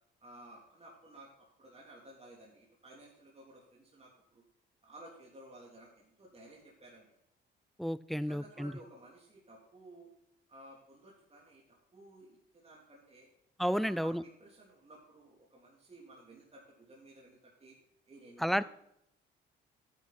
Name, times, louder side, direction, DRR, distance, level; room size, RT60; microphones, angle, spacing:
voice 1, 0.2-4.4 4.8-7.1 8.1-10.1 10.5-11.6 11.9-13.3 13.8-17.7 18.1-18.6, right 1 dB, 30° right, -4 dB, 3.5 m, -55 dB
voice 2, 7.8-8.7 13.6-14.2 18.4-18.6, equal, ahead, 18 dB, 0.5 m, -31 dB
11.0 x 9.6 x 4.4 m, 0.75 s
cardioid pair, 90°, 20 cm